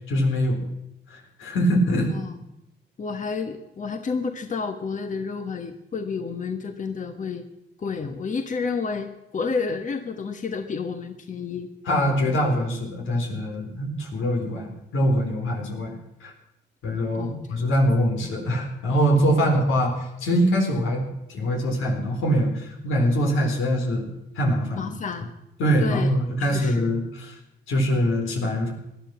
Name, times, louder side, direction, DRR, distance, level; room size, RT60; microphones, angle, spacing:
voice 1, 0.1-0.6 1.1-2.1 11.9-15.9 16.2-16.3 16.8-21.0 21.3-24.0 24.4-24.9 25.6-27.3 27.7-28.7, equal, 85° left, 2 dB, 4.0 m, -23 dB
voice 2, 3.0-7.5 7.8-11.7 17.1-17.7 24.8-25.3 25.8-26.1 26.4-26.9, left 5 dB, 40° left, 6 dB, 1.3 m, -30 dB
18.5 x 12.0 x 6.0 m, 0.85 s
cardioid pair, 90°, 20 cm